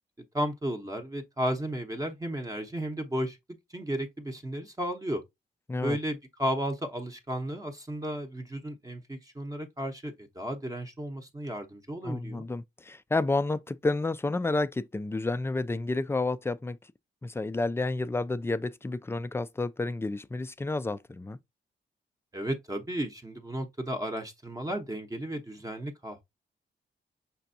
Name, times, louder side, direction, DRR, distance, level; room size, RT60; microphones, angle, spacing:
voice 1, 0.3-3.4 3.7-5.2 5.8-12.5 22.3-26.2, equal, 20° right, 0.8 m, -34 dB
voice 2, 12.0-16.8 17.2-21.4, left 2 dB, 15° left, 0.3 m, -30 dB
5.8 x 3.4 x 2.6 m
cardioid pair, 95°, 19 cm